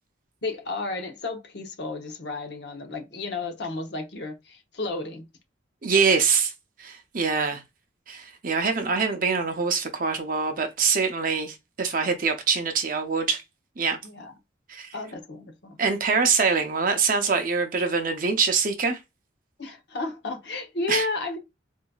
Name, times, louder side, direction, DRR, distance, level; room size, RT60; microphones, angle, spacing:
voice 1, 0.4-5.3 14.0-14.3 14.9-15.8 19.6-21.4, left 3 dB, 65° left, 0.8 m, -32 dB
voice 2, 5.8-6.5 6.8-7.6 8.1-13.4 13.8-14.0 14.7-14.9 15.8-19.0 20.9-21.1, right 5 dB, 50° right, 0.6 m, -24 dB
3.9 x 2.6 x 2.3 m
head